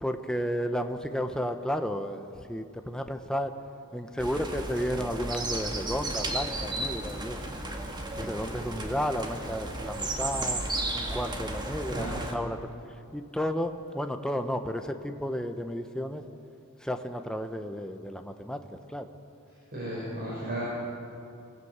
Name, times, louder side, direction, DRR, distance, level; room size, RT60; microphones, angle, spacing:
voice 1, 0.0-3.5 3.9-7.4 8.2-10.6 10.9-12.7 13.1-16.2 16.8-18.6 18.9-19.1, equal, 5° left, 6 dB, 0.9 m, -32 dB
sound 1, 4.2-12.3, right 2 dB, 20° right, 1.8 m, -34 dB
voice 2, 11.9-12.2 19.7-20.6, right 1 dB, 45° right, -7 dB, 5.7 m, -34 dB
24.0 x 15.5 x 8.1 m, 2.5 s
head